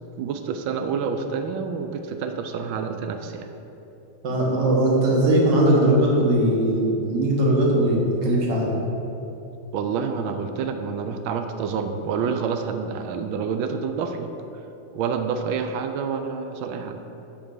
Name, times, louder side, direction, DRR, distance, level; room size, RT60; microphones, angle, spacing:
voice 1, 0.2-3.5 9.7-14.3 14.9-17.0, right 6 dB, 75° right, 7 dB, 1.3 m, -28 dB
voice 2, 4.2-8.9, right 1 dB, 60° right, -3 dB, 1.9 m, -20 dB
5.9 x 5.3 x 6.6 m, 2.9 s
omnidirectional pair, 2.3 m